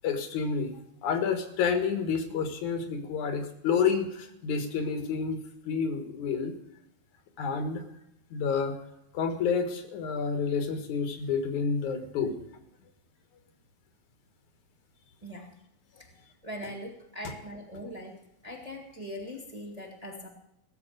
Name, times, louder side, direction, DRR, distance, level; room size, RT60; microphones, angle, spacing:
voice 1, 0.0-5.4 5.7-6.6 7.4-7.8 8.3-8.8 9.1-12.4 17.2-17.3, left 6 dB, 80° left, 7 dB, 3.0 m, -29 dB
voice 2, 16.4-18.1 18.4-20.3, equal, 15° right, 0 dB, 1.5 m, -41 dB
17.5 x 7.7 x 6.6 m, 0.80 s
omnidirectional pair, 3.3 m